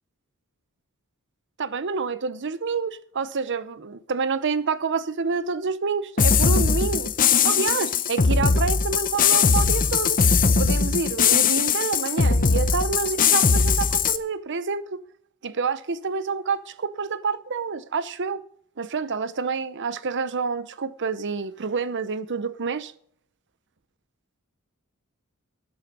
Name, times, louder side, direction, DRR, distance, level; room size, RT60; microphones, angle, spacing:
voice 1, 1.6-7.1 7.4-10.2 10.6-14.8 15.4-18.4 18.8-22.9, right 5 dB, 55° right, 0.8 m, -28 dB
sound 1, 6.2-14.2, left 5 dB, 40° left, 0.8 m, -20 dB
13.0 x 9.6 x 5.4 m
head